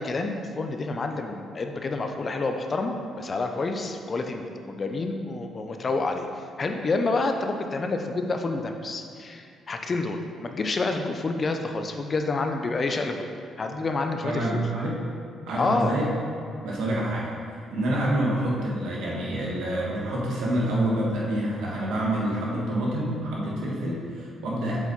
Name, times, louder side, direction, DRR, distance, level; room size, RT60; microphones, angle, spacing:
voice 1, 0.0-6.3 6.6-13.3 13.6-14.6 15.6-15.9, left 3 dB, 40° left, 5 dB, 0.6 m, -28 dB
voice 2, 14.2-15.0 15.5-16.1 16.6-17.3 17.7-24.8, right 1 dB, 85° right, -5 dB, 1.5 m, -27 dB
7.2 x 4.1 x 4.1 m, 2.4 s
cardioid pair, 90°, 0 cm